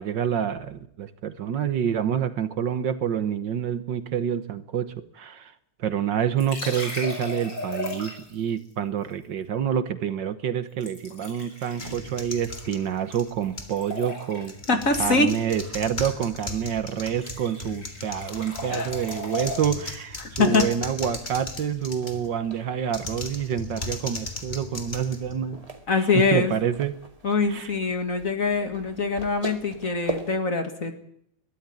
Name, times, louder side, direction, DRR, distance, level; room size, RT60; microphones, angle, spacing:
voice 1, 0.0-5.5 5.8-14.5 15.0-25.6 26.0-26.9 27.5-27.7, right 8 dB, 65° right, 12 dB, 1.6 m, -27 dB
sound 1, 6.4-8.4 10.8-13.2 13.4-14.6 16.4-16.6 16.9-19.6, left 1 dB, 60° left, 6.7 m, -36 dB
sound 2, 11.8-13.8 14.4-22.3 22.9-25.8, left 2 dB, 20° left, 2.3 m, -37 dB
voice 2, 14.7-15.3 18.7-18.9 20.2-20.7 25.9-26.5 27.2-31.0, left 4 dB, 40° left, 7 dB, 2.3 m, -23 dB
sound 3, 22.0-30.4, right 1 dB, 20° right, 2.0 m, -41 dB
22.0 x 13.5 x 9.8 m, 0.72 s
omnidirectional pair, 2.2 m